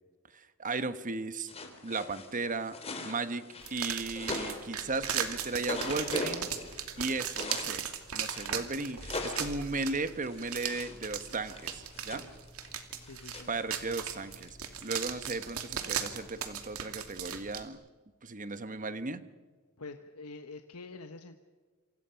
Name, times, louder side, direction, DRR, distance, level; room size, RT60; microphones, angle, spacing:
voice 1, 0.3-1.5 1.8-2.8 3.0-6.5 7.0-7.9 8.1-12.3 13.5-17.8 18.2-19.2, right 3 dB, 35° right, 12 dB, 1.2 m, -36 dB
sound 1, 1.5-7.8 8.2-11.0 11.3-14.5, left 2 dB, 30° left, 3.5 m, -41 dB
sound 2, 3.6-17.6, right 8 dB, 70° right, 2.5 m, -37 dB
voice 2, 13.0-13.5 19.8-21.3, left 3 dB, 75° left, 7 dB, 1.2 m, -46 dB
28.0 x 26.0 x 5.8 m, 1.5 s
head